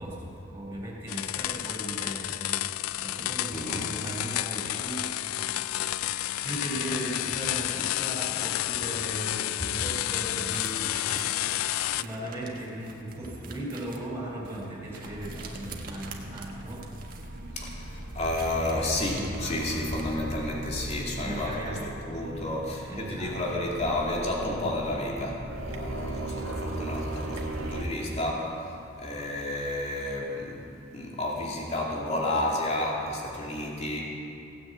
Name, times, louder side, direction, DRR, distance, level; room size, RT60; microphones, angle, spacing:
voice 1, 0.0-5.5 6.4-11.0 11.9-16.9 21.2-21.9 22.8-23.4, right 1 dB, 10° right, -4 dB, 4.6 m, -37 dB
sound 1, 1.1-12.0, left 14 dB, 80° left, 0.3 m, -30 dB
voice 2, 3.5-3.8 17.6-21.6 22.1-30.6 30.9-34.0, left 1 dB, 30° left, -3 dB, 2.7 m, -31 dB
sound 2, 9.7-20.2, right 4 dB, 40° right, 1.6 m, -46 dB
sound 3, 15.0-27.8, right 1 dB, 85° right, 1.7 m, -38 dB
17.0 x 9.8 x 8.2 m, 2.7 s
head